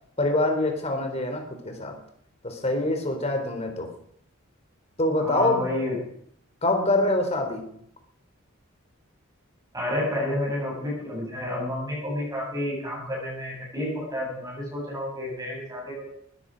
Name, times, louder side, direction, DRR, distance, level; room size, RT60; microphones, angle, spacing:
voice 1, 0.2-1.9 2.4-3.9 5.0-5.7 6.6-7.6, left 2 dB, 30° left, 5 dB, 3.5 m, -25 dB
voice 2, 5.2-6.0 9.7-16.0, left 1 dB, 20° right, -4 dB, 8.0 m, -30 dB
19.5 x 14.0 x 5.2 m, 0.68 s
head